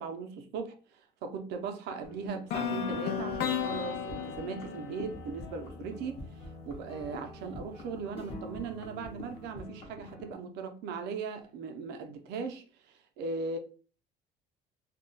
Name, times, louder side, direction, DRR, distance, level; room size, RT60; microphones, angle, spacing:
voice 1, 0.0-6.2 6.7-13.6, right 4 dB, 80° right, 0.6 m, -38 dB
sound 1, 2.0-10.3, left 1 dB, 35° left, 0.7 m, -46 dB
sound 2, 2.5-6.5, left 7 dB, 70° left, 0.5 m, -35 dB
2.3 x 2.1 x 3.8 m
cardioid pair, 160°, 17 cm